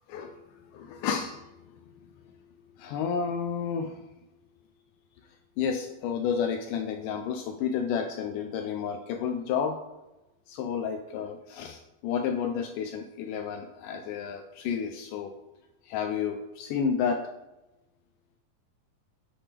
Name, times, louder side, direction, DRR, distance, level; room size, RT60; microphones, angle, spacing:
voice 1, 0.1-2.4 2.8-4.1 5.6-9.8 10.5-15.4 15.8-17.3, left 7 dB, 80° left, 6 dB, 1.9 m, -31 dB
8.5 x 5.6 x 3.4 m, 0.99 s
omnidirectional pair, 4.1 m